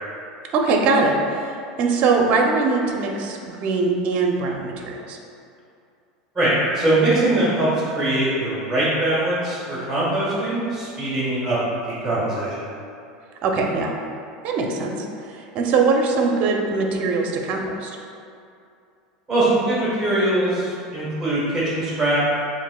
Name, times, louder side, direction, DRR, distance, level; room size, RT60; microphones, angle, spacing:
voice 1, 0.5-1.5 1.8-5.2 13.4-13.9 14.4-18.0, right 4 dB, 45° right, 1 dB, 0.5 m, -21 dB
voice 2, 6.3-11.6 11.9-12.6 19.3-22.3, right 1 dB, 5° right, -8 dB, 1.2 m, -22 dB
7.1 x 2.5 x 2.2 m, 2.5 s
supercardioid pair, 125°, 3 cm